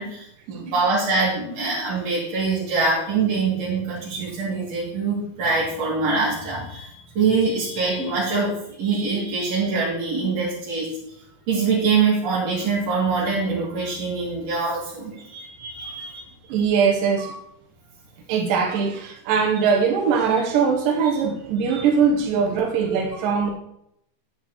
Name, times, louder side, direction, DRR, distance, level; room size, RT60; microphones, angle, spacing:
voice 1, 0.0-10.9 11.5-16.2 21.7-21.9, right 4 dB, 55° right, -8 dB, 3.6 m, -24 dB
voice 2, 16.5-17.4 18.3-23.5, right 6 dB, 85° right, 2 dB, 2.6 m, -21 dB
10.5 x 8.7 x 3.0 m, 0.75 s
omnidirectional pair, 3.8 m